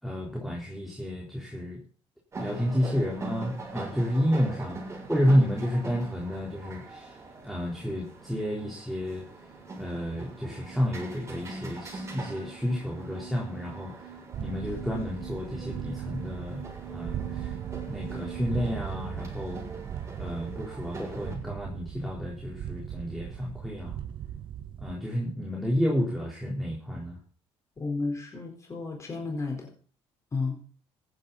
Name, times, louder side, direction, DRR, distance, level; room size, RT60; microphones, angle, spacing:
voice 1, 0.0-1.8 2.4-7.1 7.4-9.2 9.8-14.1 14.4-17.5 17.9-19.6 20.2-24.0 24.8-27.2, equal, ahead, -4 dB, 4.0 m, -30 dB
sound 1, 2.3-21.4, right 3 dB, 25° right, 6.7 m, -43 dB
sound 2, 9.3-18.5, right 11 dB, 90° right, 2.6 m, -45 dB
sound 3, 14.3-25.0, right 9 dB, 50° right, 0.8 m, -39 dB
voice 2, 27.8-29.7 30.3-30.6, left 3 dB, 30° left, 1 dB, 4.5 m, -32 dB
15.0 x 11.0 x 4.2 m, 0.41 s
cardioid pair, 105°, 11 cm